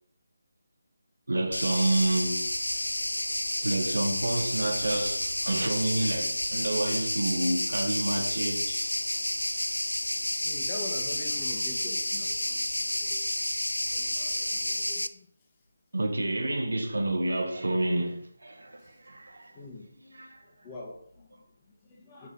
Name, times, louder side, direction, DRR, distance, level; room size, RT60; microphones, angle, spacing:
voice 1, 1.3-2.4 3.6-8.9 15.9-19.6 20.0-20.4, right 2 dB, 70° right, 1.0 m, -29 dB
sound 1, 1.5-15.1, left 1 dB, 85° left, 0.4 m, -30 dB
voice 2, 10.1-13.3 13.9-15.3 18.8-19.0 19.5-19.9 20.4-22.3, left 2 dB, 25° left, 1.5 m, -45 dB
5.4 x 5.2 x 4.0 m
figure-of-eight pair, 155°, 0 cm